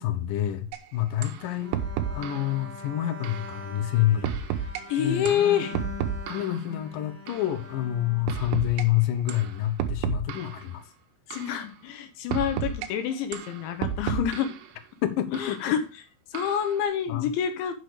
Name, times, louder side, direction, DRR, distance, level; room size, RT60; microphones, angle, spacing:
voice 1, 0.0-1.7 2.1-4.4 5.0-5.8 6.3-10.8 15.0-15.6 17.1-17.3, left 13 dB, 70° left, 2.2 m, -28 dB
sound 1, 0.7-0.8 1.2-1.4 1.7-2.5 3.2-3.5 4.2-4.8 5.3-6.6 7.3-7.5 8.3-8.8 9.3-9.5 9.8-10.6 11.3-11.6 12.3-12.9 13.3-14.6 15.3-15.5 16.4-16.7, right 9 dB, 75° right, 2.9 m, -31 dB
Bowed string instrument, 1.6-9.0, left 2 dB, 30° left, 2.7 m, -43 dB
voice 2, 4.9-5.8 11.3-14.5 15.3-15.8 16.3-17.7, left 8 dB, 90° left, 3.6 m, -27 dB
9.0 x 6.5 x 5.0 m
omnidirectional pair, 5.1 m